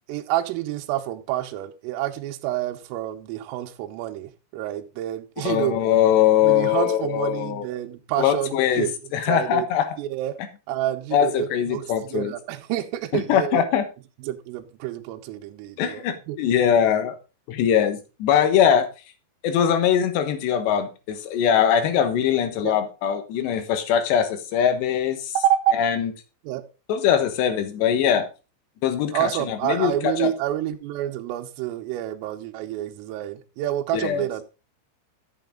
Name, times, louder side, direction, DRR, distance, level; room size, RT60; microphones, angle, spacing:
voice 1, 0.1-5.8 6.4-8.9 9.2-9.7 10.0-10.4 10.7-13.6 14.2-16.4 22.6-22.8 25.3-25.8 26.4-26.6 29.1-34.4, right 12 dB, 90° right, 3.5 m, -28 dB
voice 2, 5.4-7.7 8.2-10.0 11.1-12.3 13.1-13.8 15.8-17.2 17.5-18.9 19.4-25.3 25.7-26.1 26.9-28.3 28.8-30.3 33.9-34.3, left 9 dB, 70° left, 3.2 m, -22 dB
12.0 x 8.0 x 3.7 m
omnidirectional pair, 5.8 m